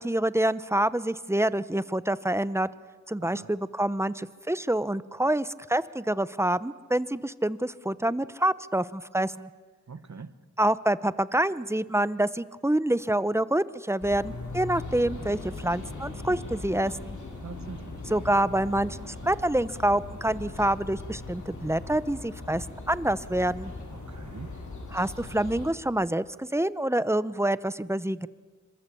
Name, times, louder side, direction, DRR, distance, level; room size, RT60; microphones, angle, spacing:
voice 1, 0.0-2.7 3.1-9.5 10.6-17.2 18.1-23.7 24.9-28.3, right 1 dB, 10° right, 16 dB, 0.9 m, -27 dB
voice 2, 3.2-3.5 9.9-10.3 17.4-18.0 23.9-24.5, right 4 dB, 70° right, 13 dB, 1.5 m, -43 dB
sound 1, 14.0-25.7, left 2 dB, 80° left, 5.7 m, -39 dB
27.0 x 25.5 x 8.5 m, 1.4 s
wide cardioid pair, 75°, 29 cm